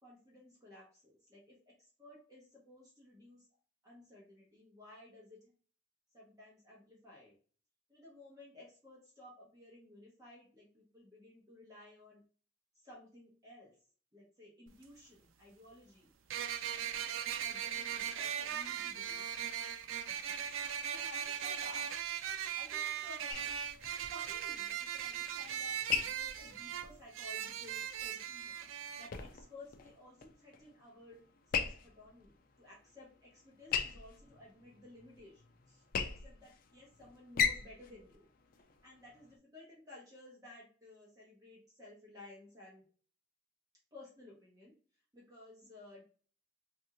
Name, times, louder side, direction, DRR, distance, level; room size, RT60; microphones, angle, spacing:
voice 1, 0.0-3.5 3.8-5.4 6.1-7.4 7.9-12.2 12.7-13.7 14.1-16.1 17.4-19.5 20.8-21.9 22.5-23.5 24.1-28.7 29.0-31.2 31.5-38.3 38.8-42.8 43.9-44.7 45.1-46.0, left 2 dB, 20° right, -4 dB, 0.9 m, -56 dB
sound 1, 14.7-14.8 16.3-29.1, right 9 dB, 80° right, 0.4 m, -39 dB
sound 2, 23.3-39.4, left 7 dB, 45° left, 0.3 m, -41 dB
3.4 x 2.4 x 2.9 m, 0.42 s
head